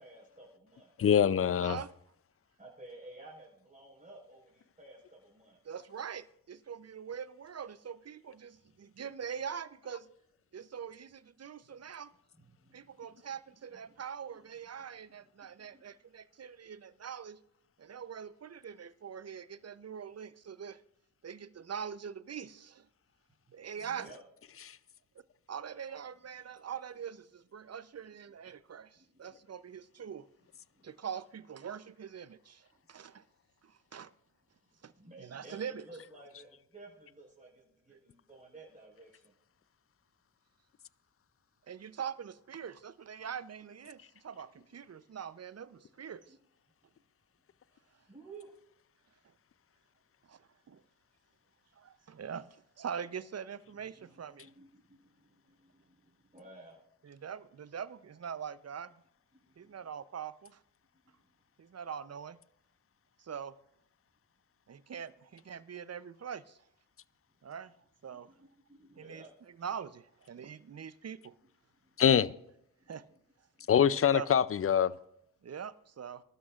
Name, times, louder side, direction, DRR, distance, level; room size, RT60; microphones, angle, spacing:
voice 1, 0.0-0.9 2.6-5.6 12.4-13.2 13.7-13.8 15.2-15.8 23.7-24.2 28.9-29.2 30.7-30.9 34.9-39.3 46.3-46.4 48.1-48.5 54.0-56.8 59.3-59.8 61.0-61.1 68.1-69.3 71.8-72.1 72.8-73.2 73.6-73.7, right 2 dB, 20° right, 4.9 m, -54 dB
voice 2, 1.0-1.8 72.0-72.3 73.7-74.9, left 8 dB, 35° left, 0.5 m, -24 dB
voice 3, 5.6-10.1 10.5-12.1 12.7-17.4 17.8-20.8 21.2-22.9 23.5-24.1 25.5-30.3 30.8-33.2 33.6-34.1 34.8-34.9 35.2-35.9 41.7-46.3 50.3-50.8 51.8-52.5 52.8-54.5 57.0-58.9 59.6-60.6 61.6-62.4 63.2-63.5 64.7-66.6 67.4-67.7 68.0-68.3 69.0-71.3 72.9-73.0 73.9-74.3 75.4-76.2, right 7 dB, 35° right, 0.7 m, -43 dB
23.5 x 12.5 x 2.5 m
hypercardioid pair, 45°, 42 cm